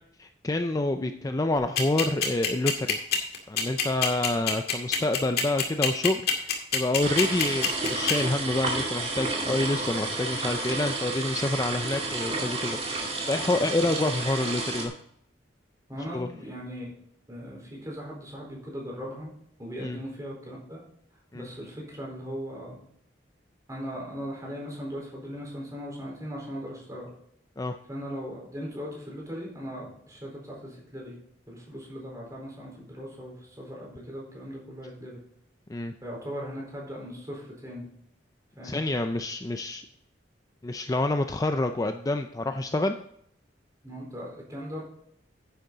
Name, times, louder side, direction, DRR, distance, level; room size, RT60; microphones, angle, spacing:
voice 1, 0.2-3.0 3.5-14.9 16.1-16.3 19.8-20.0 21.3-21.5 27.6-27.8 35.7-35.9 38.6-39.8 40.6-43.0, left 2 dB, 20° left, 7 dB, 0.4 m, -28 dB
sound 1, 1.8-8.1, left 8 dB, 55° left, 2.2 m, -24 dB
sound 2, 7.0-14.9, right 3 dB, 35° right, 2.2 m, -31 dB
voice 2, 15.9-16.9 17.3-19.3 19.6-20.8 21.3-22.8 23.7-27.1 27.9-31.2 31.5-35.2 36.0-37.9 38.6-38.9 43.8-44.8, equal, 20° right, -3 dB, 4.3 m, -38 dB
10.0 x 9.3 x 4.0 m, 0.69 s
head